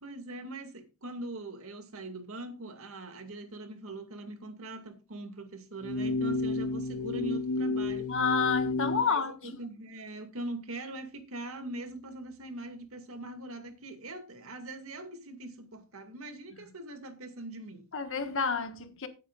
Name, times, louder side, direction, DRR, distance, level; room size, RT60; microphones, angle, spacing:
voice 1, 0.0-8.1 8.9-17.9, right 2 dB, 65° right, 2.2 m, -42 dB
sound 1, 5.8-9.0, left 3 dB, 90° left, 0.7 m, -31 dB
voice 2, 8.1-9.6 17.9-19.1, left 5 dB, 60° left, 1.5 m, -29 dB
17.0 x 9.1 x 2.5 m
head